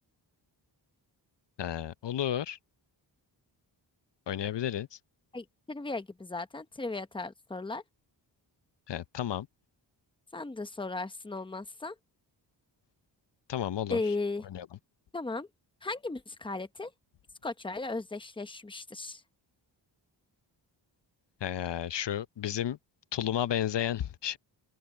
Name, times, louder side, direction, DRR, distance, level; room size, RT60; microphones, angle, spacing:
voice 1, 1.6-2.6 4.3-5.0 8.9-9.5 13.5-14.0 14.5-14.7 21.4-22.8 23.1-24.4, left 10 dB, 65° left, 0.8 m, -32 dB
voice 2, 5.3-7.8 10.3-12.0 13.9-14.4 15.1-15.5 15.8-16.9 17.4-19.2, left 3 dB, 10° left, 0.9 m, -36 dB
open air
wide cardioid pair, 130°, 45 cm